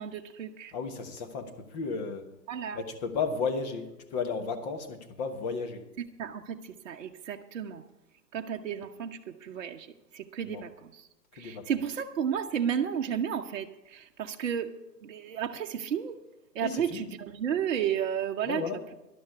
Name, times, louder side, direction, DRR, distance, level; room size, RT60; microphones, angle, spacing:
voice 1, 0.0-0.7 2.5-2.8 6.0-7.9 8.3-11.1 11.3-16.2 16.5-18.6, right 8 dB, 50° right, 0.9 m, -33 dB
voice 2, 0.7-2.3 2.7-5.9 10.5-10.6 11.4-11.7 16.6-17.0 18.4-18.8, left 5 dB, 25° left, 1.3 m, -34 dB
13.0 x 11.5 x 4.7 m
hypercardioid pair, 140°, 49 cm